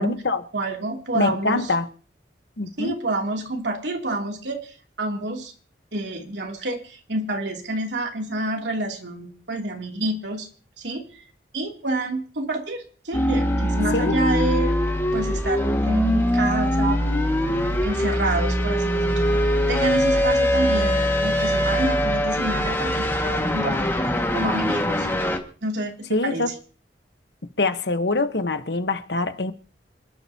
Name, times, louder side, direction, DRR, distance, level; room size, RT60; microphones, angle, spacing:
voice 1, 0.0-0.4 1.1-1.9 2.6-2.9 13.9-14.1 26.1-26.5 27.6-29.5, left 3 dB, 70° left, 1.2 m, -24 dB
voice 2, 0.5-1.7 2.8-5.5 5.9-10.5 10.8-11.2 11.5-14.7 15.1-17.0 17.5-24.0 24.3-25.1 25.6-26.5, right 2 dB, 80° right, 3.0 m, -28 dB
sound 1, 13.1-25.4, equal, 15° left, 1.9 m, -22 dB
27.5 x 11.5 x 2.9 m
head